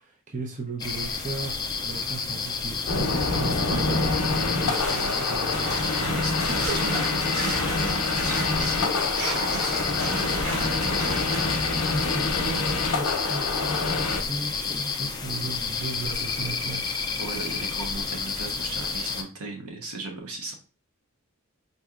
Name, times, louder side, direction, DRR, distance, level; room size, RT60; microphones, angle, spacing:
voice 1, 0.0-6.2 11.9-17.0, right 3 dB, 35° right, 0 dB, 0.6 m, -36 dB
sound 1, 0.8-19.2, left 5 dB, 20° left, 0.4 m, -30 dB
sound 2, 2.9-14.2, left 3 dB, 90° left, 0.7 m, -27 dB
voice 2, 3.7-4.0 6.0-11.2 17.2-20.5, right 3 dB, 85° right, 2 dB, 1.0 m, -36 dB
sound 3, 4.7-11.6, right 1 dB, 70° right, 1.8 m, -35 dB
4.2 x 2.7 x 2.4 m, 0.34 s
head